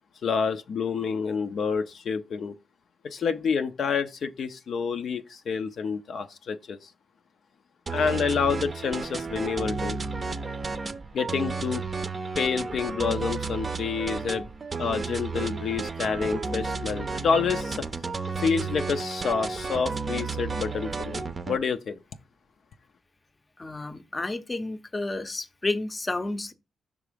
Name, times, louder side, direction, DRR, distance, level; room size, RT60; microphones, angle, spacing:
voice 1, 0.2-2.5 3.0-6.8 7.9-10.0 11.1-11.8 12.4-14.5 14.8-17.8 18.4-22.0, left 6 dB, 65° left, 0.5 m, -28 dB
sound 1, 7.9-21.6, right 4 dB, 35° right, 0.5 m, -32 dB
voice 2, 23.6-26.5, left 2 dB, 25° left, 0.6 m, -31 dB
5.8 x 3.6 x 5.0 m
cardioid pair, 85°, 0 cm